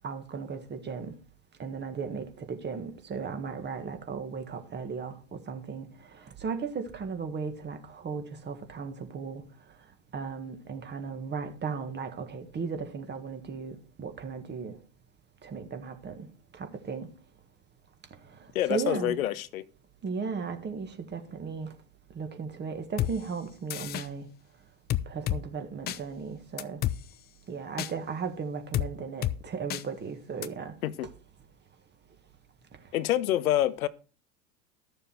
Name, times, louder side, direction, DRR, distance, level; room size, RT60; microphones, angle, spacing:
voice 1, 0.0-1.1 1.6-5.9 6.1-9.4 10.1-14.8 15.4-16.3 16.6-17.1 18.7-19.2 20.0-21.7 22.1-24.3 25.1-26.8 27.5-30.7, right 5 dB, 25° right, 1.7 m, -36 dB
voice 2, 18.5-19.6 30.8-31.1 32.9-33.9, left 13 dB, 70° left, 0.8 m, -27 dB
sound 1, 23.0-23.1 23.7-24.1 24.9-25.4 25.9-26.0 26.6-27.0 27.8-27.9 28.7-28.9 29.2-29.4 29.7-29.8 30.4-30.5, left 13 dB, 25° left, 0.4 m, -29 dB
12.5 x 7.0 x 4.5 m
hypercardioid pair, 90°, 43 cm